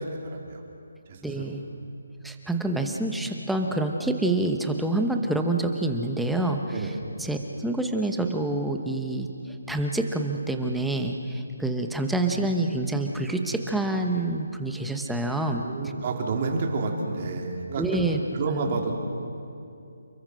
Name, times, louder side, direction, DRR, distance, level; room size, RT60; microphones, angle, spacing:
voice 1, 0.2-0.6 1.3-1.5 6.7-6.9 15.5-17.8 18.3-18.9, right 4 dB, 30° right, 1 dB, 3.1 m, -29 dB
voice 2, 1.2-1.6 2.2-15.6 17.8-18.2 18.5-18.8, right 2 dB, ahead, 3 dB, 1.0 m, -27 dB
29.0 x 21.5 x 6.3 m, 2.6 s
hypercardioid pair, 170°, 0 cm